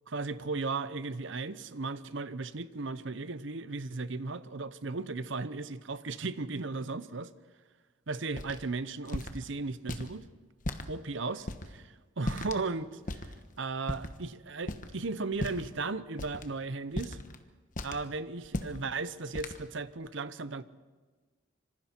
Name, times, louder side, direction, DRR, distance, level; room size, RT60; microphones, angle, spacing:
voice 1, 0.1-7.3 8.1-10.2 10.9-17.2 17.8-20.6, right 3 dB, 60° right, 14 dB, 0.8 m, -36 dB
sound 1, 8.4-8.6 9.1-9.4 9.9-10.1 10.6-10.9 11.5-11.7 12.2-12.6 13.1-13.3 13.9-14.2 14.6-15.0 15.3-15.7 16.2-16.4 17.0-17.4 17.8-18.1 18.4-18.8 19.4-19.6, left 1 dB, 40° left, 1.2 m, -36 dB
26.0 x 25.0 x 4.5 m, 1.3 s
head